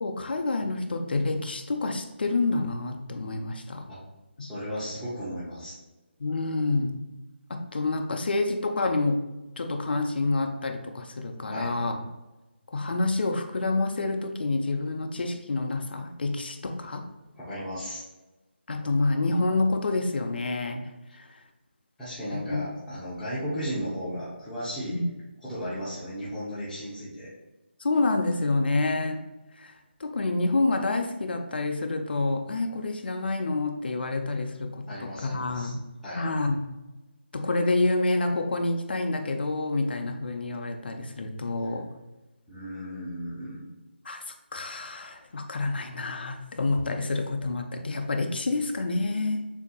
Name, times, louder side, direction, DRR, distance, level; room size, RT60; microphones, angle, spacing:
voice 1, 0.0-3.9 4.4-4.5 6.2-7.0 7.5-9.2 9.6-12.0 12.7-17.1 18.7-21.4 22.3-22.6 24.9-25.1 27.8-29.3 29.6-35.8 36.1-36.7 37.3-41.9 44.0-44.2 44.5-49.5, left 2 dB, 55° left, 5 dB, 0.6 m, -28 dB
voice 2, 4.4-5.7 11.5-11.7 17.3-18.0 22.0-25.0 25.4-27.3 34.4-34.5 34.9-35.7 36.0-36.3 42.5-43.7, equal, 5° left, -13 dB, 0.7 m, -35 dB
6.8 x 2.7 x 2.3 m, 1.1 s
figure-of-eight pair, 165°, 6 cm